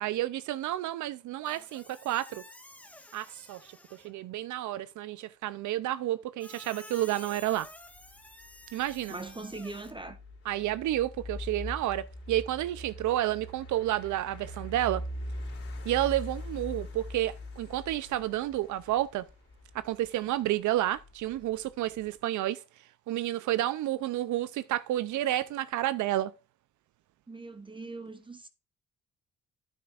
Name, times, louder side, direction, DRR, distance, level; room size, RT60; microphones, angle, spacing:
voice 1, 0.0-2.4 3.1-3.7 4.0-7.7 8.7-9.1 10.5-15.0 15.8-19.3 19.7-22.6 23.1-26.3, right 14 dB, 75° right, 0.5 m, -30 dB
Squeak, 1.5-4.2 6.4-9.9, left 1 dB, 5° left, 1.4 m, -51 dB
sound 1, 7.4-22.2, left 1 dB, 45° left, 4.0 m, -43 dB
voice 2, 9.1-10.2 27.3-28.5, right 3 dB, 15° right, 0.9 m, -41 dB
9.5 x 9.4 x 2.4 m
cardioid pair, 90°, 30 cm